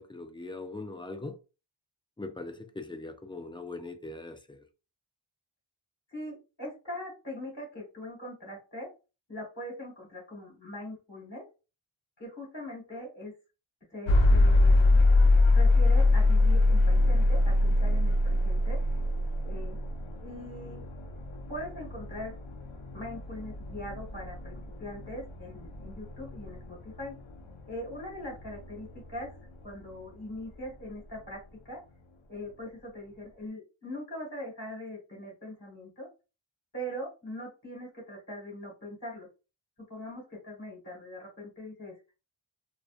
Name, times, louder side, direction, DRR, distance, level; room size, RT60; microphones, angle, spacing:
voice 1, 0.0-1.4 2.2-4.6, left 2 dB, 10° left, 0.4 m, -41 dB
voice 2, 6.1-8.9 9.3-11.5 12.2-13.3 13.9-15.0 15.5-18.8 19.4-19.8 20.2-20.8 21.5-22.3 22.9-27.2 27.7-29.4 29.6-31.4 31.6-31.8 32.3-36.1 36.7-39.3 39.9-41.9, left 1 dB, 35° left, 1.5 m, -41 dB
sound 1, 14.1-30.0, left 2 dB, 70° left, 0.6 m, -25 dB
2.5 x 2.2 x 2.4 m
wide cardioid pair, 50°, 49 cm